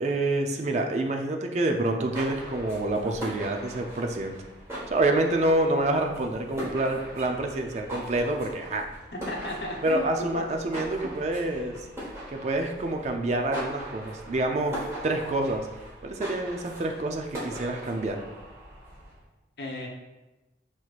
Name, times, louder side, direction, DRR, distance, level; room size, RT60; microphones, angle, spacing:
voice 1, 0.0-4.4 4.9-8.9 9.8-11.7 12.3-14.8 15.0-15.7 16.0-18.2, right 2 dB, 40° right, 4 dB, 0.4 m, -27 dB
sound 1, 2.0-19.2, right 1 dB, 15° right, 1.1 m, -40 dB
voice 2, 9.3-10.4 19.6-19.9, left 1 dB, 65° left, -2 dB, 0.8 m, -34 dB
6.2 x 2.9 x 2.4 m, 1.1 s
head